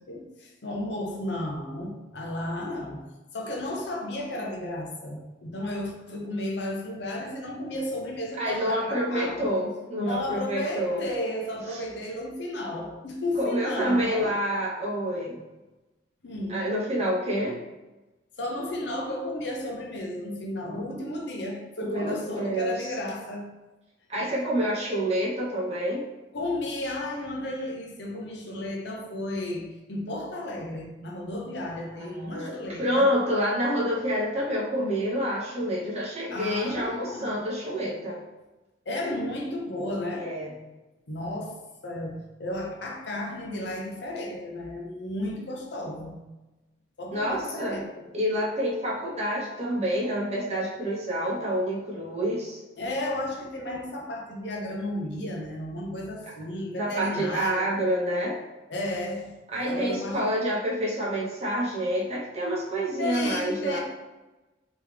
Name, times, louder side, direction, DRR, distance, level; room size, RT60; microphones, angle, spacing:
voice 1, 0.1-3.1 3.3-9.5 10.0-14.3 16.2-16.6 18.4-23.5 26.3-33.1 36.3-37.4 38.9-40.3 41.1-46.2 47.0-48.1 52.8-57.7 58.7-59.3 59.7-60.3 63.0-63.8, left 1 dB, 70° left, 0 dB, 0.7 m, -33 dB
voice 2, 8.4-11.0 11.7-11.8 13.3-15.4 16.5-17.6 21.8-23.0 24.1-26.1 32.1-38.2 40.1-40.5 47.1-47.8 48.1-52.6 56.8-58.4 59.5-63.8, equal, 35° right, -5 dB, 1.1 m, -28 dB
3.5 x 3.1 x 3.4 m, 1.1 s
head